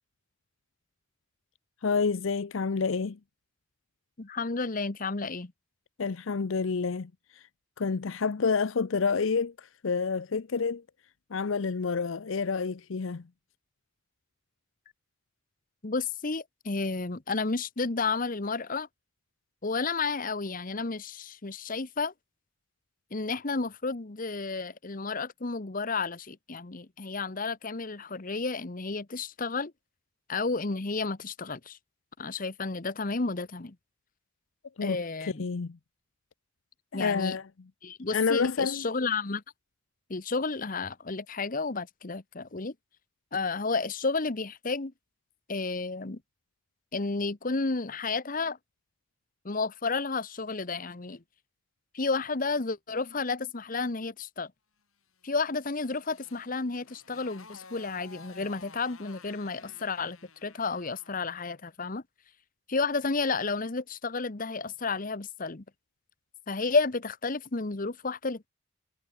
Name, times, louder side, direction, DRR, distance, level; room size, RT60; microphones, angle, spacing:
voice 1, 1.8-3.2 6.0-7.4 7.8-10.8 11.3-13.2 34.8-35.0 35.4-35.8 36.9-37.4 38.1-38.8, left 5 dB, 70° left, 0.6 m, -28 dB
voice 2, 4.2-5.5 15.8-18.9 19.6-22.1 23.1-29.7 30.3-31.8 32.2-33.8 34.8-35.4 36.9-37.4 37.8-39.4 40.1-42.7 43.3-44.9 45.5-46.2 46.9-48.6 49.4-51.2 51.9-54.5 55.2-62.0 62.7-65.6 66.5-68.5, left 4 dB, 40° left, 1.0 m, -31 dB
Motorcycle, 55.2-61.3, left 4 dB, 85° left, 6.8 m, -53 dB
head